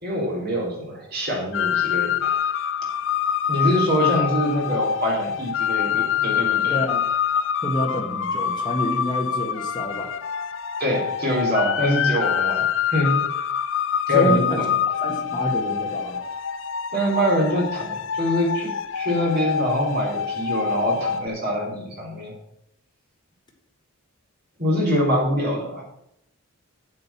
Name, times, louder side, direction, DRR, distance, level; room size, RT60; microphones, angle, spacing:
voice 1, 0.0-2.3 3.5-6.7 10.8-13.2 14.1-14.7 16.9-22.3 24.6-25.8, equal, 45° right, -2 dB, 3.6 m, -24 dB
sound 1, 1.5-21.3, left 8 dB, 55° left, 0.5 m, -25 dB
voice 2, 6.7-7.1 7.6-10.1 14.1-14.6 15.0-16.2, equal, 20° left, 0 dB, 1.6 m, -27 dB
7.9 x 7.9 x 5.6 m, 0.76 s
head